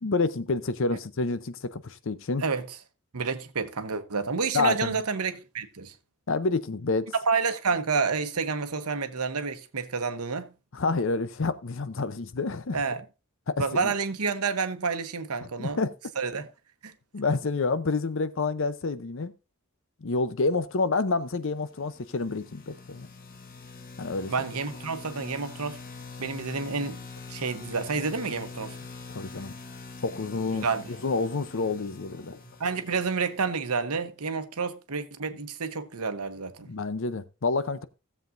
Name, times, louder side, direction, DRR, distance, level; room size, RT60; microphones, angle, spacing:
voice 1, 0.0-2.4 4.5-5.0 6.3-7.1 10.7-12.8 13.5-13.9 15.6-15.9 17.1-19.3 20.0-23.1 24.0-24.3 29.1-29.6 30.0-32.4 36.7-37.9, left 3 dB, 60° left, 0.7 m, -28 dB
voice 2, 3.1-5.9 7.3-10.5 12.7-13.0 13.6-15.8 16.2-16.5 16.8-16.9 24.3-25.8 26.2-27.0 27.3-28.7 30.5-30.9 32.6-36.7, right 5 dB, 90° right, 1.0 m, -29 dB
sound 1, 21.8-33.6, left 4 dB, 40° left, 1.1 m, -44 dB
16.5 x 7.4 x 2.6 m
head